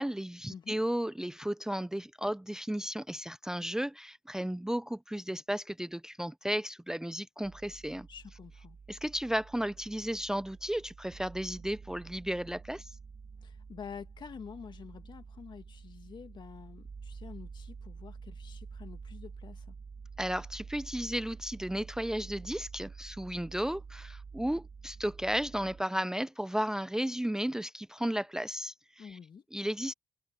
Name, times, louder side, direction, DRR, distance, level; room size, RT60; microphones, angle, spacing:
voice 1, 0.0-8.1 8.9-13.0 20.2-29.2 29.5-29.9, equal, 5° right, 0.5 m, -34 dB
sound 1, 7.4-25.8, right 5 dB, 45° right, 2.0 m, -48 dB
voice 2, 7.9-8.8 13.4-19.7 29.0-29.4, left 6 dB, 55° left, 2.3 m, -48 dB
supercardioid pair, 55°, 9 cm